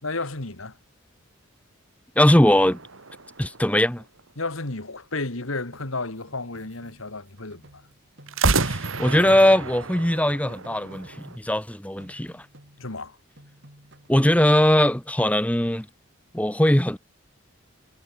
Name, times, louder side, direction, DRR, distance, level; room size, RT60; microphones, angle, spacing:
voice 1, 0.0-0.8 4.4-7.8 12.8-13.2, left 3 dB, 75° left, 2.4 m, -32 dB
voice 2, 2.2-2.8 3.4-4.0 8.6-12.4 14.1-15.9 16.3-17.0, left 1 dB, 5° left, 1.1 m, -20 dB
sound 1, 2.4-4.2 8.3-11.4, right 3 dB, 70° right, 2.2 m, -29 dB
sound 2, 5.7-8.7 9.0-11.7 12.0-13.1 13.4-14.4, right 1 dB, 55° right, 7.7 m, -54 dB
head